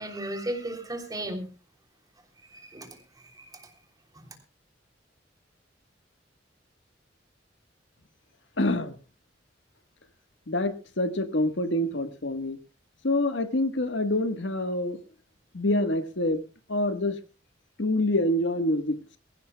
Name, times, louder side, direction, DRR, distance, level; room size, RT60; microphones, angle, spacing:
voice 1, 0.0-1.5 2.5-3.0 3.4-3.7 4.2-4.3, right 1 dB, 20° right, 3.2 m, -35 dB
voice 2, 8.6-9.0 10.5-12.6 13.0-15.0 15.5-16.4 16.7-17.2 17.8-19.0, left 1 dB, 85° left, 1.4 m, -26 dB
22.5 x 15.5 x 2.3 m
head